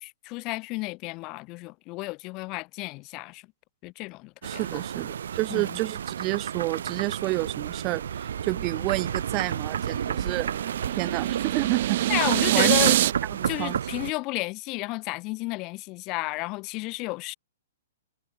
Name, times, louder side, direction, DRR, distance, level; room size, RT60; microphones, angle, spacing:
voice 1, 0.0-3.5 3.8-4.8 5.5-5.8 12.1-13.0 13.4-17.4, left 24 dB, 30° left, 3.4 m, -32 dB
voice 2, 4.4-10.5 11.0-12.0 12.5-12.7 13.4-13.8, right 22 dB, 30° right, 3.1 m, -30 dB
sound 1, 4.4-14.1, right 8 dB, 75° right, 1.6 m, -32 dB
sound 2, 8.8-13.1, right 14 dB, 55° right, 2.0 m, -26 dB
hypercardioid pair, 145°, 0 cm